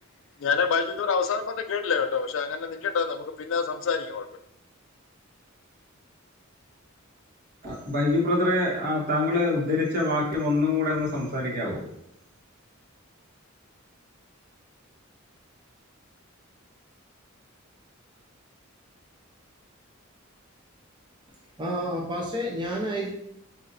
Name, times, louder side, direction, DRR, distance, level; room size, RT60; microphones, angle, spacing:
voice 1, 0.4-4.3, left 5 dB, 65° left, 7 dB, 0.4 m, -27 dB
voice 2, 7.6-11.8, left 2 dB, 50° right, -4 dB, 1.3 m, -25 dB
voice 3, 21.6-23.1, equal, 20° right, -2 dB, 0.6 m, -29 dB
4.3 x 2.7 x 3.9 m, 0.74 s
head